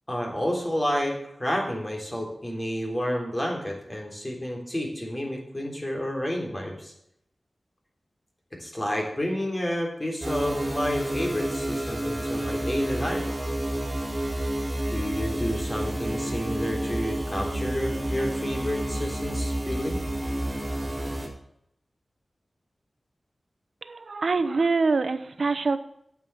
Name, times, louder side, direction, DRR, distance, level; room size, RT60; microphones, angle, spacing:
voice 1, 0.1-6.9 8.6-13.3 14.9-20.0, equal, 25° left, 0 dB, 3.5 m, -30 dB
sound 1, 10.2-21.3, right 1 dB, 25° right, 3.5 m, -30 dB
voice 2, 23.8-25.8, right 4 dB, 70° right, 11 dB, 0.9 m, -25 dB
8.7 x 7.5 x 7.5 m, 0.75 s
wide cardioid pair, 75°, 0 cm